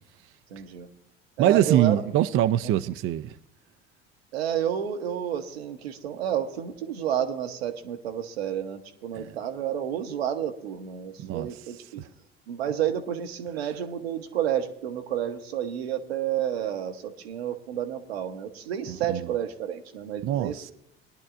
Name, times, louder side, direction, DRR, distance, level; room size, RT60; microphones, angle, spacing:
voice 1, 0.5-0.9 1.4-2.0 4.3-12.0 12.5-20.6, right 10 dB, 80° right, 1.0 m, -30 dB
voice 2, 1.4-3.3 9.2-9.4 11.2-11.6 12.0-12.1 18.9-19.3 20.2-20.7, right 12 dB, 45° right, 0.5 m, -24 dB
20.0 x 10.5 x 2.5 m
hypercardioid pair, 65°, 30 cm